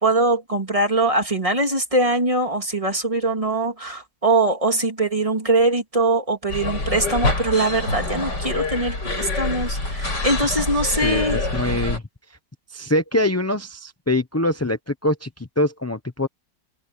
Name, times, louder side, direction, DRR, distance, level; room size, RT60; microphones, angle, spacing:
voice 1, 0.0-11.4, right 2 dB, 20° right, 2.5 m, -22 dB
sound 1, 6.5-12.0, left 2 dB, 70° left, 8.3 m, -26 dB
voice 2, 11.0-12.0 12.7-16.3, left 1 dB, 15° left, 0.5 m, -24 dB
omnidirectional pair, 1.9 m